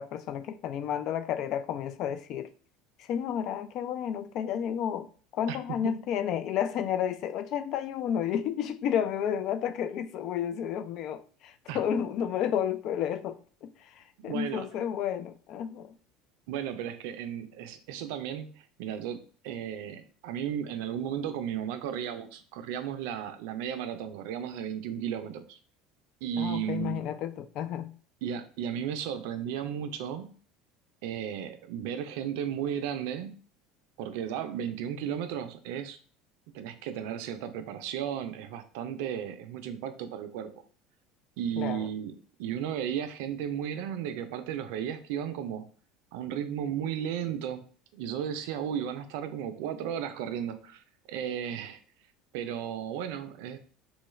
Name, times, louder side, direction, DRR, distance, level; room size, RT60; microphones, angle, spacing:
voice 1, 0.0-2.5 3.0-5.1 5.3-15.9 26.4-27.9 41.6-41.9, left 9 dB, 55° left, 0.3 m, -31 dB
voice 2, 5.5-5.9 11.7-11.8 14.2-14.7 16.5-25.6 26.2-27.0 28.2-30.3 31.0-33.4 34.0-36.0 36.5-40.5 41.4-45.7 46.1-47.6 47.9-51.8 52.3-53.6, right 9 dB, 75° right, 0.4 m, -34 dB
3.0 x 2.3 x 3.1 m
supercardioid pair, 105°, 0 cm